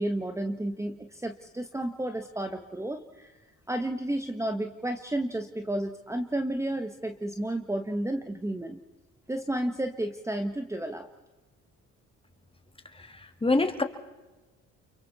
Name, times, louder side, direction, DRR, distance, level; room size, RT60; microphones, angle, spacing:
voice 1, 0.0-3.3 3.7-8.8 9.3-11.1, right 1 dB, 10° right, 6 dB, 1.4 m, -32 dB
voice 2, 13.0-13.8, left 2 dB, 20° left, 6 dB, 2.4 m, -26 dB
29.5 x 23.0 x 4.3 m, 1.2 s
cardioid pair, 90°, 30 cm